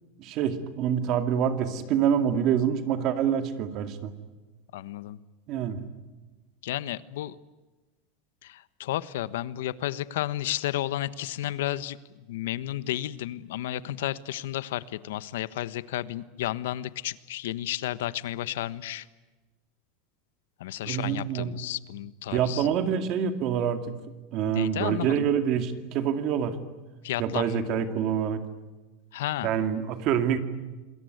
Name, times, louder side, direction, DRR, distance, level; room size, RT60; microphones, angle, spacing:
voice 1, 0.2-4.1 5.5-5.8 20.8-21.6 22.3-24.0 24.3-26.6 27.2-28.4 29.4-30.4, right 8 dB, 35° right, 9 dB, 2.3 m, -26 dB
voice 2, 4.7-5.2 6.6-7.4 8.4-12.0 12.3-19.0 20.6-22.7 24.5-25.3 27.0-27.6 29.1-29.5, left 14 dB, 85° left, 16 dB, 1.3 m, -32 dB
28.0 x 21.5 x 9.5 m, 1.2 s
supercardioid pair, 180°, 0 cm